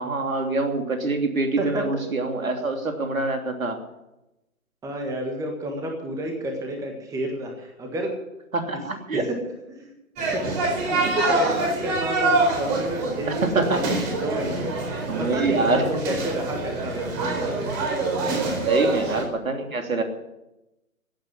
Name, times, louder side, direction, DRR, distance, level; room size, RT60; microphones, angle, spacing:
voice 1, 0.0-3.8 8.5-9.3 13.3-13.8 15.1-15.9 18.6-20.0, right 3 dB, 70° right, 5 dB, 3.1 m, -25 dB
voice 2, 1.6-2.0 4.8-8.2 9.1-9.2 9.7-9.9 10.3-17.8 18.6-18.7, right 1 dB, 10° right, 3 dB, 1.7 m, -30 dB
sound 1, 10.2-19.2, right 2 dB, 30° right, 4.4 m, -25 dB
16.0 x 8.9 x 9.8 m, 0.95 s
figure-of-eight pair, 130°, 42 cm